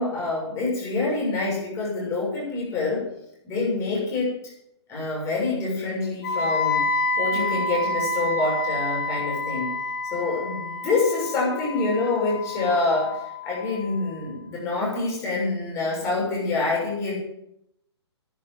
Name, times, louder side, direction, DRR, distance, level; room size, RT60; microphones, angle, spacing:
voice 1, 0.0-3.0 3.4-4.3 4.9-6.8 7.2-9.7 10.1-13.2 13.4-17.1, left 3 dB, 20° left, -4 dB, 6.8 m, -26 dB
Wind instrument woodwind instrument, 6.2-14.2, left 2 dB, 45° left, 5.1 m, -28 dB
10.5 x 10.5 x 7.8 m, 0.81 s
figure-of-eight pair, 125°, 15 cm